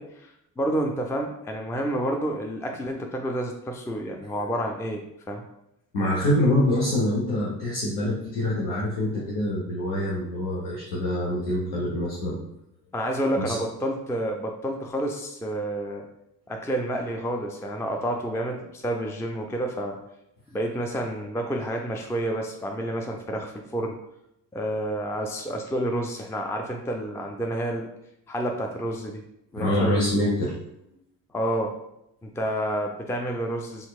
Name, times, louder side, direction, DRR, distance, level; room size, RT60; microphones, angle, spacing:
voice 1, 0.0-5.4 12.9-16.0 16.5-20.0 20.5-24.0 24.5-27.9 28.3-29.2 29.5-30.0 31.3-31.7 32.2-33.9, right 1 dB, 5° left, 2 dB, 0.4 m, -29 dB
voice 2, 5.9-12.4 13.4-13.5 29.6-30.5, left 1 dB, 80° left, -7 dB, 1.0 m, -25 dB
4.4 x 3.6 x 2.4 m, 0.82 s
hypercardioid pair, 50°, 46 cm